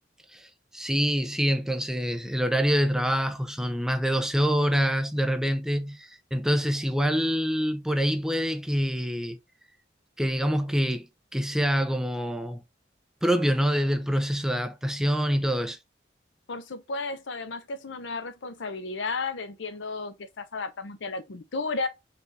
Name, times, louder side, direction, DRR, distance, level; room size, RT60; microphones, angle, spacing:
voice 1, 0.3-9.4 10.2-12.6 13.2-15.8, equal, 5° right, 0.5 m, -26 dB
voice 2, 16.5-21.9, left 3 dB, 80° left, 0.7 m, -33 dB
4.7 x 2.5 x 3.2 m
head